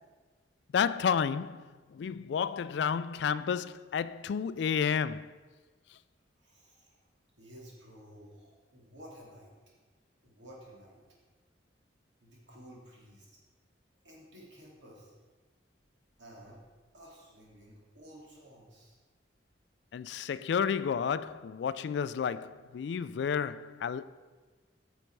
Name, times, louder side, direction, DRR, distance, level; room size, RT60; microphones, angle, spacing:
voice 1, 0.7-5.3 19.9-24.0, left 7 dB, 65° left, 0.3 m, -31 dB
voice 2, 6.4-7.0 7.4-9.5 10.2-11.0 12.2-13.4 14.0-15.2 16.2-16.6 16.9-19.0, equal, 75° right, 2.7 m, -53 dB
9.8 x 6.3 x 4.6 m
head